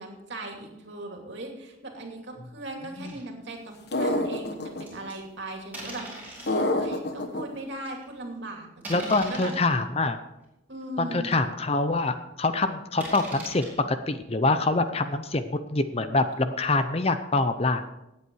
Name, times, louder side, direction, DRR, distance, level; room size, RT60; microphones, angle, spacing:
voice 1, 0.0-6.1 6.7-9.5 10.7-11.3, right 2 dB, 60° right, 2 dB, 2.6 m, -38 dB
sound 1, 3.0-3.2 3.8-3.9 4.9-5.1 5.7-6.6 7.2-7.3 7.9-8.1 8.8-9.8 10.4-10.5 11.0-11.1 11.3-11.4 13.0-13.7, right 1 dB, 10° right, 4.4 m, -40 dB
sound 2, 3.9-4.8 6.5-7.4, left 1 dB, 55° left, 1.3 m, -26 dB
voice 2, 8.9-10.2 11.0-17.8, left 2 dB, 30° left, 10 dB, 0.6 m, -25 dB
17.0 x 8.5 x 4.7 m, 0.90 s
head